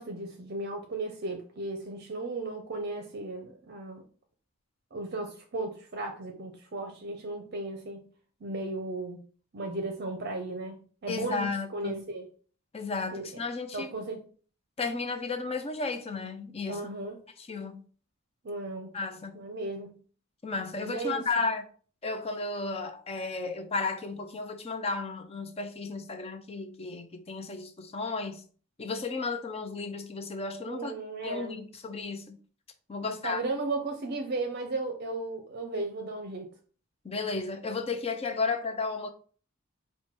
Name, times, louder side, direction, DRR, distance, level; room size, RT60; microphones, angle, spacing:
voice 1, 0.0-4.0 4.9-8.1 8.4-9.2 9.5-12.3 13.1-13.3 13.7-14.2 16.7-17.2 18.4-18.9 19.3-20.0 20.7-21.2 30.7-31.6 33.0-36.5, right 2 dB, 55° right, 0.6 m, -35 dB
voice 2, 11.1-12.0 12.7-13.9 14.8-16.9 17.4-17.8 18.9-19.4 20.4-21.6 22.0-28.4 28.8-30.9 31.2-32.4 32.9-33.4 37.0-39.1, left 4 dB, 30° left, 0.5 m, -33 dB
4.4 x 2.2 x 4.4 m
head